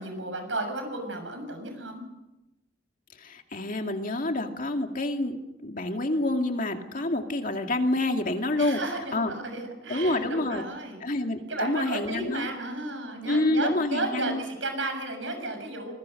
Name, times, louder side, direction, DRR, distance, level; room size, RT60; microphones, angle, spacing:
voice 1, 0.0-2.0 8.6-11.0 11.5-15.9, right 2 dB, 80° right, 6 dB, 6.8 m, -33 dB
voice 2, 3.2-5.4 5.6-8.8 9.1-9.3 9.9-10.6 11.0-12.5 13.3-14.4, left 2 dB, 45° left, 4 dB, 2.3 m, -27 dB
26.0 x 20.0 x 6.5 m, 0.98 s
head